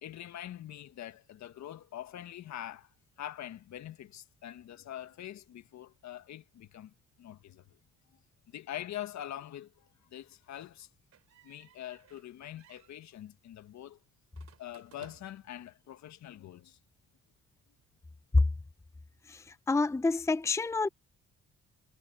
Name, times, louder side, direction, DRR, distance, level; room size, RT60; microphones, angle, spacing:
voice 1, 0.0-2.9 3.2-7.8 8.5-10.9 11.4-14.0 14.6-16.8, left 12 dB, 65° left, 1.7 m, -44 dB
sound 1, 11.1-12.3 12.6-13.0 14.3-15.5, right 9 dB, 60° right, 4.2 m, -60 dB
voice 2, 19.7-20.9, left 3 dB, 10° left, 0.6 m, -28 dB
supercardioid pair, 65°, 29 cm